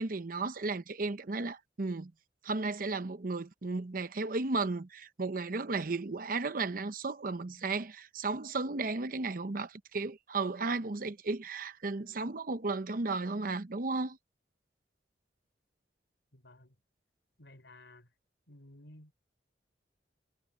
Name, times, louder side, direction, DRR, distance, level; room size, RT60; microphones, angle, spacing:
voice 1, 0.0-2.1 2.4-14.2, right 3 dB, 50° right, 0.8 m, -34 dB
voice 2, 16.3-16.8 17.4-18.1 18.5-19.1, left 1 dB, 80° left, 5.2 m, -55 dB
head